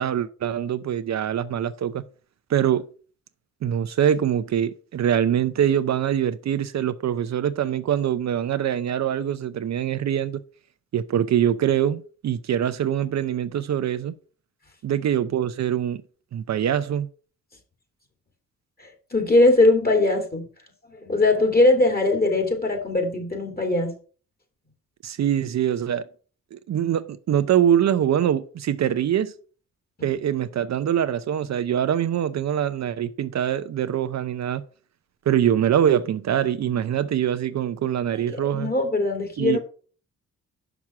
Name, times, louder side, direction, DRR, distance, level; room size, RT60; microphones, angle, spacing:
voice 1, 0.0-2.0 2.5-2.9 3.6-10.4 10.9-14.1 14.8-16.0 16.3-17.1 25.0-26.0 26.5-29.3 30.0-34.6 35.3-38.7 39.4-39.6, right 9 dB, 60° right, 0.6 m, -23 dB
voice 2, 18.8-20.5 20.9-23.9 38.3-39.6, left 2 dB, 30° left, 2.9 m, -21 dB
6.1 x 6.0 x 5.8 m
cardioid pair, 65°, 32 cm